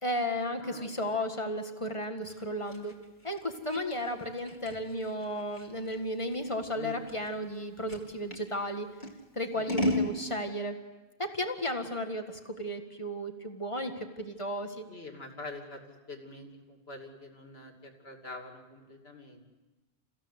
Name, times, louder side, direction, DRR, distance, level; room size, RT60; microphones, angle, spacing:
voice 1, 0.0-2.9 3.2-8.9 9.4-10.8 11.2-14.8, equal, 30° left, 5 dB, 1.8 m, -34 dB
voice 2, 0.6-1.3 6.7-7.0 9.5-9.7 14.9-19.4, left 2 dB, 65° left, 3 dB, 3.0 m, -46 dB
Scissors, 2.3-8.5 9.0-10.2, left 1 dB, 45° left, 2.8 m, -35 dB
29.0 x 16.0 x 8.1 m, 1.2 s
omnidirectional pair, 1.1 m